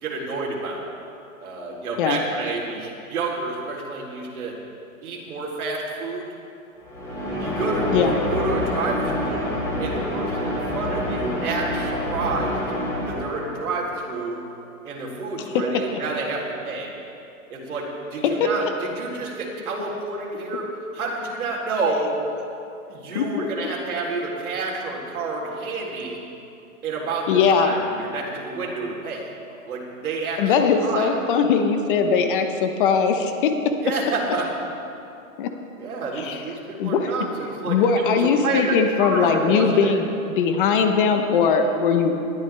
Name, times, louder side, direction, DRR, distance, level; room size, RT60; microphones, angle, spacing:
voice 1, 0.0-0.9 1.4-4.6 5.0-6.3 7.4-12.6 13.1-14.5 14.8-16.9 17.5-20.7 20.9-22.2 22.9-26.2 26.8-29.3 29.7-30.6 30.8-31.1 33.8-34.5 35.8-39.9, right 3 dB, 80° right, -2 dB, 3.7 m, -29 dB
sound 1, 6.8-13.7, left 1 dB, 5° left, 2.8 m, -27 dB
voice 2, 27.3-27.7 30.4-33.5 35.4-35.5 36.2-36.4 36.8-37.1 37.6-42.1, left 6 dB, 35° left, 6 dB, 1.0 m, -20 dB
20.0 x 12.0 x 3.4 m, 2.7 s
hypercardioid pair, 160°, 43 cm